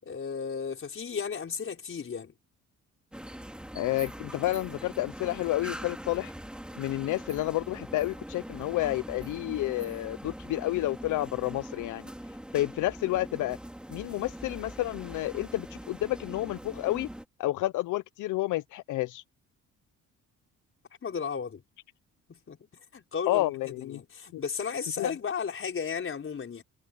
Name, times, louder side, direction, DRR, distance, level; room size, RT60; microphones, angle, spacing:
voice 1, 0.0-2.3 21.0-21.6 22.3-26.6, left 6 dB, 45° left, 5.0 m, -34 dB
sound 1, 3.1-17.2, equal, 5° right, 3.1 m, -42 dB
voice 2, 3.7-6.3 6.8-12.1 12.5-13.6 13.9-17.1 17.4-19.2 23.3-24.0 24.3-24.4 25.0-25.1, left 16 dB, 80° left, 0.7 m, -30 dB
cardioid pair, 90°, 30 cm